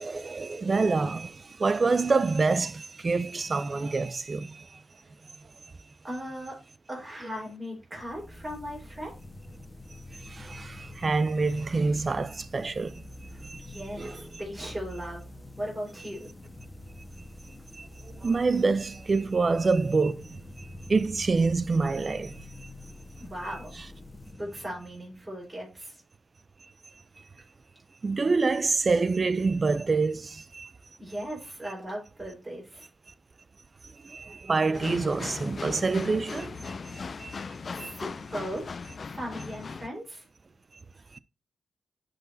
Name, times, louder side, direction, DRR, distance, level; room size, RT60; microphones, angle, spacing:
voice 1, 0.0-4.8 10.2-13.0 13.4-13.6 14.0-14.2 17.7-17.9 18.2-22.4 28.0-30.7 34.0-36.7 37.2-37.4 37.8-37.9 41.1-41.2, right 4 dB, 45° right, 0.4 m, -27 dB
voice 2, 6.0-6.5 6.9-9.1 13.6-15.2 15.6-16.3 23.2-23.7 24.4-26.0 31.0-32.9 37.8-38.7 39.0-40.2, equal, 25° right, 4.2 m, -37 dB
sound 1, 8.0-25.5, left 1 dB, 25° left, 1.3 m, -46 dB
sound 2, 34.7-39.9, left 4 dB, 55° left, 0.3 m, -38 dB
11.0 x 4.0 x 2.7 m
cardioid pair, 50°, 0 cm